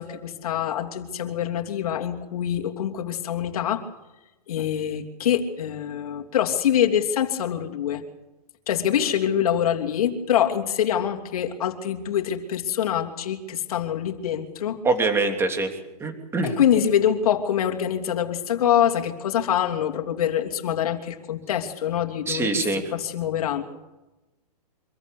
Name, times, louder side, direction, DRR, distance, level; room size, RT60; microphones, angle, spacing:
voice 1, 0.0-3.8 4.5-8.0 8.7-14.8 16.4-22.6 22.9-23.6, left 9 dB, 65° left, 4 dB, 3.0 m, -25 dB
voice 2, 14.8-15.7 16.0-16.5 22.3-22.8, right 3 dB, 10° right, 5 dB, 3.1 m, -24 dB
25.5 x 14.5 x 8.4 m, 1.0 s
hypercardioid pair, 140°, 20 cm